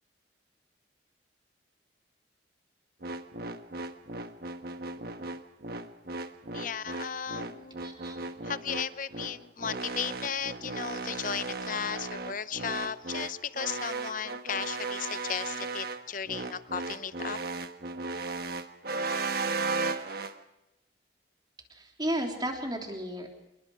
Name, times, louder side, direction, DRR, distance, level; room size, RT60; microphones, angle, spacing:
sound 1, 3.0-20.3, right 3 dB, 55° right, 1.3 m, -35 dB
voice 1, 6.5-7.8 8.4-17.4, left 7 dB, 45° left, 15 dB, 0.7 m, -35 dB
voice 2, 7.8-8.3 21.7-23.3, right 1 dB, 25° right, 2 dB, 3.3 m, -34 dB
27.0 x 21.5 x 4.8 m, 0.93 s
head